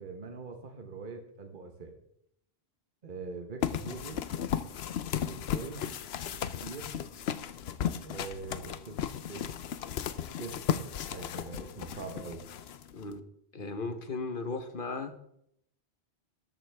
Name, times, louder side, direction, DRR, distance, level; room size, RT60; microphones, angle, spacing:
voice 1, 0.0-1.9 3.0-4.2 5.2-5.9 6.3-6.9 8.0-9.4 10.4-12.5, right 4 dB, 50° right, 4 dB, 1.3 m, -43 dB
sound 1, 3.6-13.1, left 9 dB, 75° left, 0.9 m, -35 dB
voice 2, 12.9-13.2 13.5-15.2, left 3 dB, 55° left, 9 dB, 1.2 m, -36 dB
13.0 x 8.8 x 3.5 m, 0.73 s
omnidirectional pair, 1.1 m